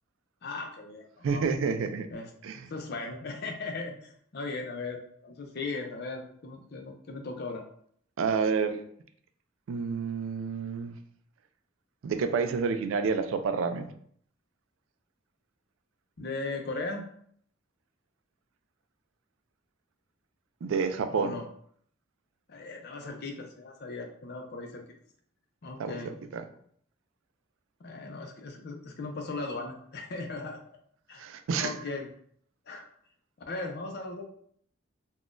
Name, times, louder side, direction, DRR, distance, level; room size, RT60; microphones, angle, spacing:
voice 1, 0.4-1.4 2.1-2.3 2.7-7.6 16.2-17.0 21.1-21.5 22.5-24.8 25.6-26.1 27.8-30.6 31.1-31.2 31.6-32.1 32.7-32.9 33.5-34.2, left 3 dB, 55° left, 4 dB, 0.5 m, -37 dB
voice 2, 1.2-2.1 2.4-2.6 8.2-8.8 9.7-11.0 12.0-13.9 20.6-21.4 25.8-26.0 26.3-26.4 31.2-31.7, right 5 dB, 85° right, 9 dB, 0.3 m, -29 dB
3.6 x 2.3 x 2.5 m, 0.63 s
head